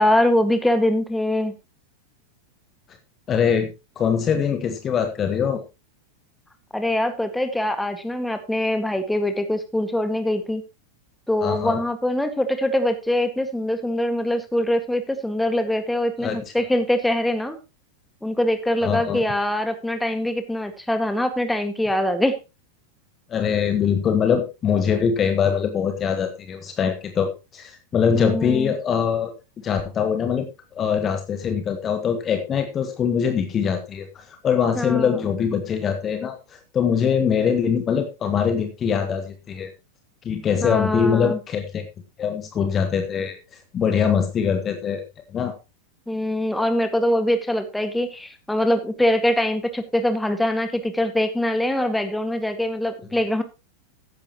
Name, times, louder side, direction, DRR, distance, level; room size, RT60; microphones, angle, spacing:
voice 1, 0.0-1.5 6.7-10.6 11.3-17.6 18.2-22.4 28.1-28.7 34.8-35.3 40.6-41.4 46.1-53.4, left 1 dB, 5° left, 7 dB, 1.9 m, -23 dB
voice 2, 3.3-5.6 11.4-11.8 16.2-16.4 18.8-19.2 23.3-29.3 29.6-30.5 30.7-39.7 40.2-41.9 42.2-43.4 43.7-45.0 45.3-45.5, left 7 dB, 25° left, 7 dB, 1.4 m, -23 dB
14.5 x 10.5 x 3.0 m, 0.27 s
figure-of-eight pair, 90°, 0 cm